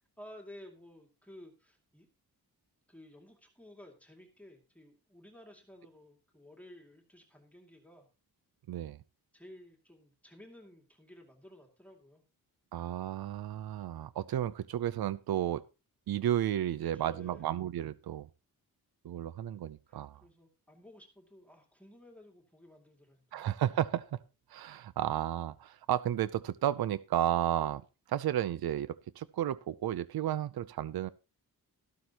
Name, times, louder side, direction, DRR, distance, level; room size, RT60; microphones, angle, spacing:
voice 1, 0.2-2.1 2.9-8.1 9.3-12.2 16.9-17.5 19.9-23.5, left 1 dB, 5° left, 2.5 m, -54 dB
voice 2, 8.7-9.0 12.7-15.6 16.1-18.3 19.0-20.2 23.3-24.2 24.5-27.8 28.1-31.1, right 11 dB, 80° right, 0.6 m, -32 dB
13.5 x 12.5 x 2.9 m
wide cardioid pair, 165°, 37 cm